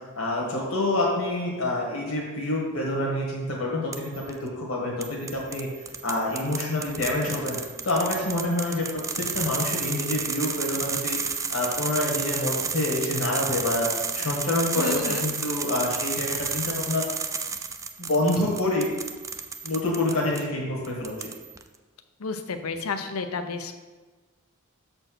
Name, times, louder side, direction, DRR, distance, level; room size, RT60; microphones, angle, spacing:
voice 1, 0.1-5.7 6.0-7.6 7.8-8.8 9.2-13.9 14.1-17.0 18.0-18.9 19.6-21.3, left 1 dB, 70° left, -3 dB, 1.5 m, -27 dB
sound 1, 3.9-4.3 5.0-20.4 20.8-21.6, right 5 dB, 15° right, 0.3 m, -32 dB
voice 2, 14.7-15.3 22.2-23.7, left 4 dB, 90° left, 8 dB, 0.7 m, -31 dB
6.5 x 4.4 x 6.1 m, 1.3 s
head